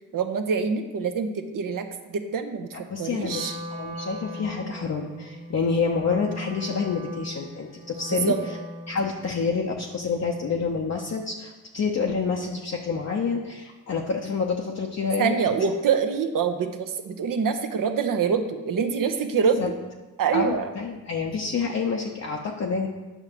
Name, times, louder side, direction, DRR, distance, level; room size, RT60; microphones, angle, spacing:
voice 1, 0.1-2.7 3.0-3.5 8.1-8.4 15.2-19.7 20.2-20.7, right 6 dB, 50° right, 7 dB, 0.9 m, -25 dB
voice 2, 2.9-8.3 8.9-15.3 19.6-19.7 20.3-22.9, left 5 dB, 40° left, 0 dB, 0.8 m, -28 dB
Wind instrument woodwind instrument, 3.2-9.2, equal, 20° right, 1.4 m, -39 dB
8.9 x 5.7 x 3.0 m, 1.2 s
hypercardioid pair, 40°, 43 cm